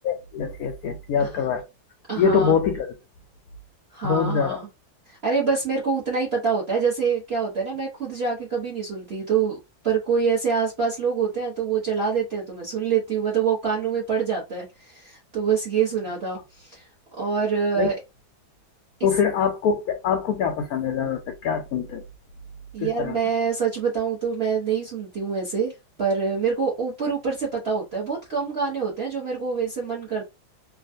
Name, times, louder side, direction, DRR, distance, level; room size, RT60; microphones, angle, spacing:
voice 1, 0.0-1.7 2.2-2.9 4.0-4.6 17.8-17.9 19.0-22.0 22.8-23.2, left 6 dB, 75° left, 0.8 m, -24 dB
voice 2, 2.1-2.6 3.9-4.7 5.1-9.6 9.8-16.9 17.2-18.0 19.0-19.1 22.7-25.7 26.0-30.2, right 6 dB, 45° right, 0.9 m, -25 dB
3.4 x 2.3 x 2.5 m
omnidirectional pair, 2.0 m